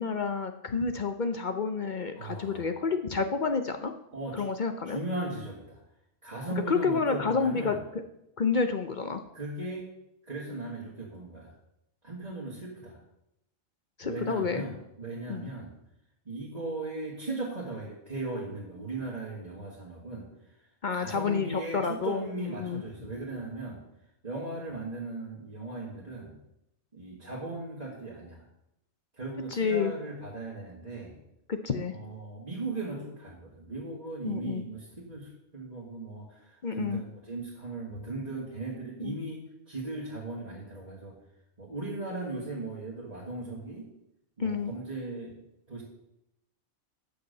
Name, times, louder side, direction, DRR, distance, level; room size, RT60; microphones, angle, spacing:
voice 1, 0.0-3.9 4.3-5.0 6.7-7.8 8.4-9.2 14.0-14.6 15.3-15.5 20.8-22.8 29.5-29.9 31.5-31.9 34.2-34.6 36.6-37.0 39.0-39.1 44.4-44.7, left 5 dB, 50° left, 7 dB, 0.6 m, -29 dB
voice 2, 2.1-2.7 4.1-4.5 4.8-5.8 6.2-7.8 9.3-9.9 10.3-11.5 12.0-13.0 14.0-15.8 16.3-20.3 20.9-23.8 24.2-26.4 26.9-28.4 29.2-31.2 31.8-41.1 41.6-43.9 44.4-45.4 45.7-45.8, right 2 dB, 30° right, -7 dB, 2.0 m, -37 dB
8.4 x 6.9 x 6.6 m, 0.84 s
omnidirectional pair, 1.4 m